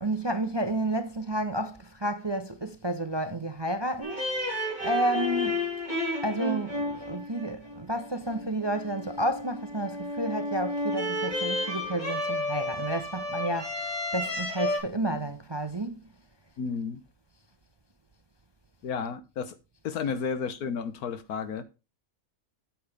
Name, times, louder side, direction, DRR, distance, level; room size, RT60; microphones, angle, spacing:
voice 1, 0.0-4.2 4.8-5.6 6.2-13.7 14.1-16.0, right 1 dB, 30° right, 0.5 m, -31 dB
sound 1, 4.0-14.8, left 1 dB, 30° left, 4.5 m, -32 dB
voice 2, 16.6-17.0 18.8-19.5 19.8-21.6, left 6 dB, 90° left, 1.5 m, -32 dB
8.9 x 7.9 x 3.4 m
omnidirectional pair, 1.5 m